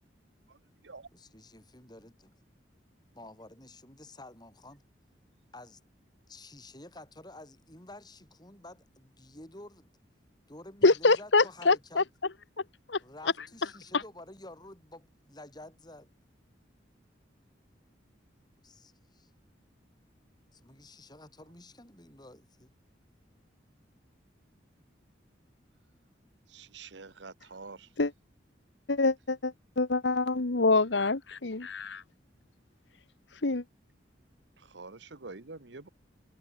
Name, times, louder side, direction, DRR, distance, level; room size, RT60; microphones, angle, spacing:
voice 1, 1.1-2.4 3.1-4.8 5.5-5.8 6.3-9.9 10.5-12.1 13.0-16.1 18.6-19.3 20.5-22.8, left 2 dB, 25° left, 6.7 m, -50 dB
voice 2, 10.8-12.0 12.9-13.0 28.0-28.1 28.9-32.0 33.4-33.6, left 3 dB, 75° left, 1.3 m, -25 dB
voice 3, 26.5-27.9 34.6-35.9, right 3 dB, 75° right, 1.3 m, -46 dB
head